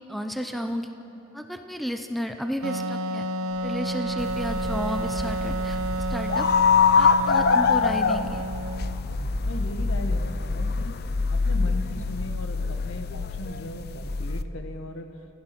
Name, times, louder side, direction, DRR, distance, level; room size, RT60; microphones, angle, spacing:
voice 1, 0.1-0.9 1.3-3.3 3.6-6.5 6.9-8.4, equal, ahead, 5 dB, 0.7 m, -32 dB
Wind instrument woodwind instrument, 2.6-9.1, right 1 dB, 75° right, 0.7 m, -30 dB
sound 1, 3.5-3.7 4.0-4.3 4.6-6.1 6.4-6.6 7.0-7.1 8.2-12.2 12.6-12.8 13.1-13.2, equal, 25° left, 6.6 m, -39 dB
sound 2, 4.2-14.4, left 5 dB, 50° left, 0.6 m, -25 dB
voice 2, 9.5-11.0 11.3-15.4, left 1 dB, 65° left, 6 dB, 1.6 m, -38 dB
29.5 x 15.5 x 6.0 m, 3.0 s
head